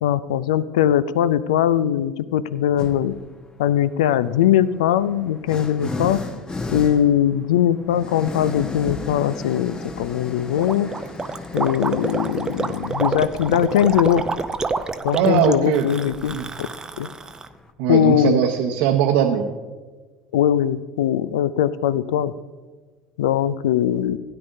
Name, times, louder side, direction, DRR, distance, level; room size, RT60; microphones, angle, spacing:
voice 1, 0.0-3.2 3.6-6.2 6.7-10.9 11.5-14.2 15.0-16.7 17.0-17.1 17.9-18.4 20.3-22.3 23.2-24.2, left 10 dB, 70° left, 17 dB, 0.4 m, -20 dB
sound 1, 2.8-3.2 4.2-17.7, left 3 dB, 20° left, 1.0 m, -35 dB
Gurgling, 10.6-17.5, right 4 dB, 20° right, 0.6 m, -28 dB
voice 2, 15.1-15.9 16.3-16.5 17.8-19.5, right 9 dB, 60° right, 2 dB, 0.8 m, -20 dB
16.5 x 9.9 x 2.7 m, 1.4 s
figure-of-eight pair, 65°, 4 cm